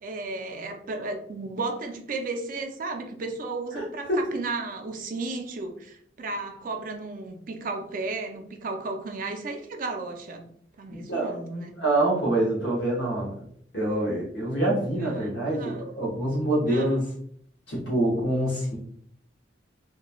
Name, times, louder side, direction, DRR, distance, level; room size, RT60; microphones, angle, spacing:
voice 1, 0.0-10.4 10.8-11.7 15.0-15.9 16.7-17.0, right 3 dB, 50° right, 4 dB, 0.4 m, -34 dB
voice 2, 3.7-4.2 10.9-11.3 11.8-13.3 13.7-17.1 17.7-18.8, right 1 dB, 70° left, -5 dB, 0.9 m, -26 dB
2.9 x 2.2 x 2.3 m, 0.64 s
head